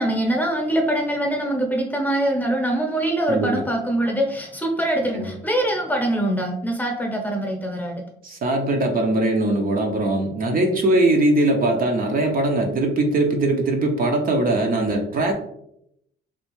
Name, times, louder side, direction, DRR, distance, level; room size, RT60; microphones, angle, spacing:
voice 1, 0.0-8.0, right 1 dB, 10° left, 0 dB, 0.8 m, -23 dB
voice 2, 3.3-3.6 5.1-5.3 8.2-15.3, right 2 dB, 45° right, 2 dB, 0.6 m, -21 dB
3.3 x 2.4 x 3.0 m, 0.75 s
cardioid pair, 90°, 20 cm